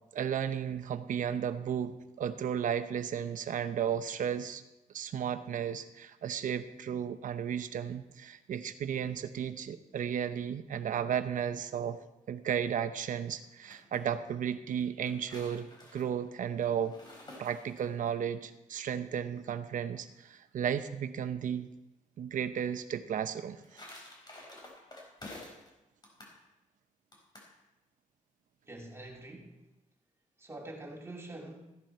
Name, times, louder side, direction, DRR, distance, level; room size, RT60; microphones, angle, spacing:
voice 1, 0.1-4.6 4.9-12.0 12.3-17.0 17.4-21.7 22.2-23.8, right 8 dB, 70° right, 10 dB, 0.9 m, -34 dB
sound 1, 13.4-14.0 14.8-18.1 23.2-25.7 26.0-26.4 27.1-27.5, left 1 dB, 30° left, 4.2 m, -50 dB
voice 2, 28.7-29.6 30.4-31.7, right 1 dB, 20° right, 0 dB, 2.5 m, -45 dB
14.5 x 11.0 x 4.4 m, 0.98 s
cardioid pair, 100°, 14 cm